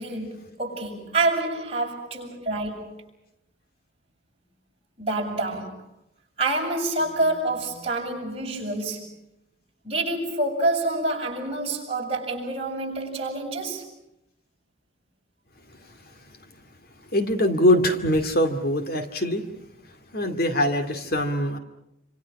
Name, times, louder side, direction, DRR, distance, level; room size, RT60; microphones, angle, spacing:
voice 1, 0.0-3.0 5.0-5.8 6.4-9.1 9.8-13.9, right 2 dB, 30° right, -1 dB, 7.2 m, -27 dB
voice 2, 17.1-19.4 20.1-21.6, left 1 dB, 50° left, 7 dB, 2.4 m, -22 dB
28.5 x 27.0 x 6.0 m, 0.83 s
head